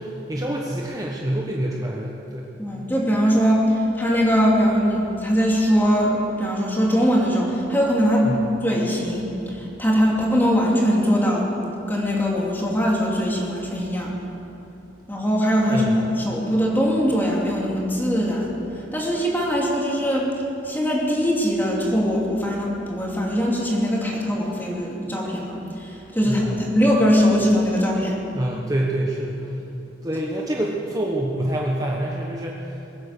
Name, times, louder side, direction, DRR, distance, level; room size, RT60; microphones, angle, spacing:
voice 1, 0.0-2.5 8.2-8.4 15.7-16.0 26.2-26.6 28.3-29.6 30.0-32.8, right 1 dB, 20° right, -2 dB, 1.1 m, -26 dB
voice 2, 2.6-8.3 8.6-11.5 11.9-14.1 15.1-18.6 18.9-20.3 20.6-28.2, equal, 10° left, -3 dB, 2.8 m, -21 dB
22.0 x 9.6 x 6.8 m, 2.9 s
head